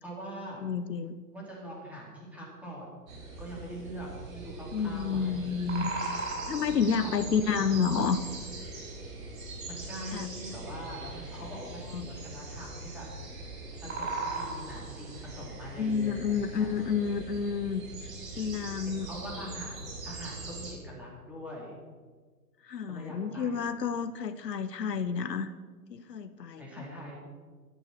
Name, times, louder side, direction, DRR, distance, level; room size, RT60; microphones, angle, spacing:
voice 1, 0.0-0.6 1.3-3.0 3.4-5.5 7.0-7.6 9.7-13.1 13.4-17.1 18.9-21.7 22.9-23.8 26.6-27.2, equal, 5° right, -5 dB, 4.1 m, -43 dB
voice 2, 0.6-1.2 4.7-5.9 6.5-8.2 10.1-10.3 11.3-11.6 11.9-12.1 15.8-18.1 18.4-19.1 22.6-25.5 25.9-26.9, left 6 dB, 75° left, 11 dB, 1.2 m, -30 dB
sound 1, 3.1-20.7, right 2 dB, 55° right, 5.1 m, -40 dB
13.5 x 12.0 x 6.2 m, 1.5 s
hypercardioid pair, 145°, 49 cm